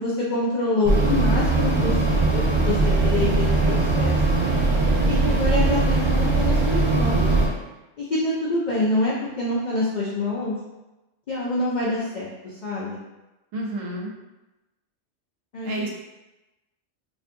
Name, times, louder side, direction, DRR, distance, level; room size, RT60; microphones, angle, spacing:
voice 1, 0.0-4.5 5.1-7.2 8.0-10.5 11.3-13.0 15.5-15.7, left 2 dB, 85° left, -6 dB, 0.4 m, -26 dB
sound 1, 0.8-7.5, right 2 dB, 60° right, 1.0 m, -20 dB
voice 2, 13.5-14.1 15.6-15.9, right 1 dB, 80° right, -1 dB, 1.0 m, -30 dB
2.5 x 2.5 x 2.5 m, 1.0 s
omnidirectional pair, 1.4 m